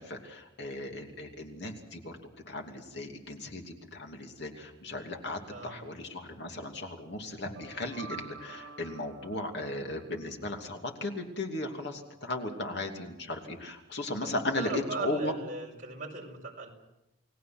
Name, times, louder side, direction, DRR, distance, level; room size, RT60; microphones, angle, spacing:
voice 1, 0.0-2.2 2.5-15.3, left 2 dB, 60° left, 3 dB, 2.8 m, -36 dB
voice 2, 5.5-5.8 14.2-16.7, right 3 dB, 40° right, 0 dB, 5.5 m, -38 dB
sound 1, 7.3-10.4, right 4 dB, 60° right, 4.9 m, -48 dB
30.0 x 19.5 x 6.1 m, 0.91 s
head